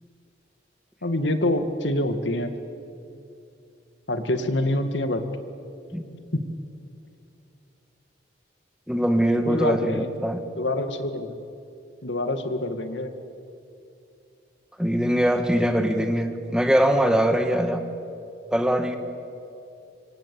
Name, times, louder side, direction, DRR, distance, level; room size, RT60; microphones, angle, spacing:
voice 1, 1.0-2.5 4.1-5.2 6.3-6.4 9.4-10.1 10.6-11.4 12.0-13.1, left 1 dB, 75° left, 8 dB, 2.1 m, -26 dB
voice 2, 8.9-10.4 14.8-17.8 18.5-19.0, equal, 5° right, 6 dB, 1.6 m, -22 dB
26.0 x 24.5 x 8.5 m, 2.7 s
head